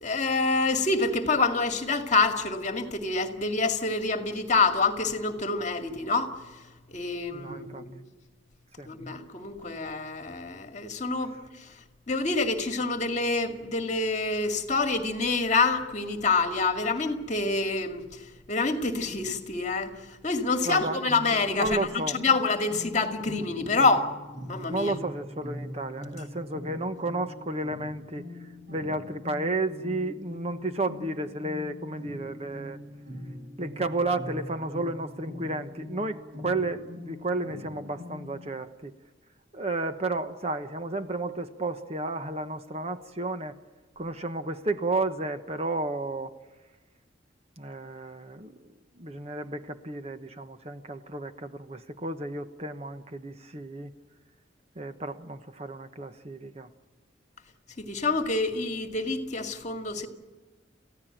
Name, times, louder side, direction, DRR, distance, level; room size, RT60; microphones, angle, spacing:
voice 1, 0.0-6.4 6.9-8.0 8.8-11.7 12.1-24.1 24.5-25.0 57.8-60.1, left 3 dB, 40° left, 2.2 m, -27 dB
voice 2, 7.3-7.8 8.8-8.9 20.6-21.0 21.5-22.2 24.7-32.8 33.6-38.9 39.5-43.6 44.0-46.3 47.6-53.9 54.7-56.7, right 2 dB, 35° right, 1.2 m, -32 dB
sound 1, 21.0-38.5, left 1 dB, 85° right, 7.0 m, -42 dB
29.0 x 16.0 x 9.2 m
head